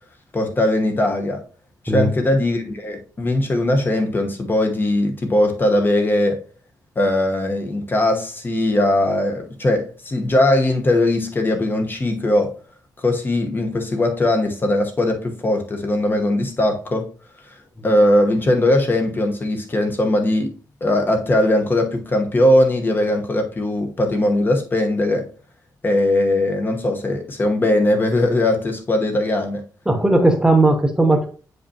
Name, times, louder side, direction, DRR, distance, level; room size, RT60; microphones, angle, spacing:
voice 1, 0.3-1.4 1.8-6.4 7.0-12.5 13.0-17.1 17.8-20.5 20.8-25.3 25.8-29.6, left 1 dB, 30° left, 1.1 m, -19 dB
voice 2, 29.9-31.3, right 2 dB, 10° right, 0.9 m, -16 dB
7.8 x 5.3 x 2.8 m
wide cardioid pair, 130°, 7 cm